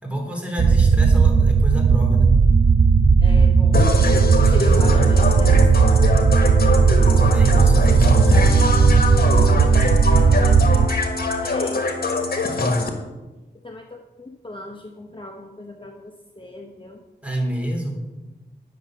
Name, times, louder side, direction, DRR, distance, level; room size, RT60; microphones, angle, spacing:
voice 1, 0.0-2.3 4.5-4.9 7.1-9.0 9.3-9.5 17.2-17.9, right 1 dB, 5° right, 0 dB, 3.5 m, -28 dB
sound 1, 0.6-10.9, right 5 dB, 40° right, 0.5 m, -15 dB
voice 2, 3.2-4.1 4.4-6.6 11.4-11.8 13.6-17.0, left 2 dB, 30° left, 2 dB, 0.9 m, -38 dB
sound 2, 3.7-12.9, left 2 dB, 60° left, 1.5 m, -23 dB
10.0 x 6.5 x 6.4 m, 1.1 s
cardioid pair, 55°, 18 cm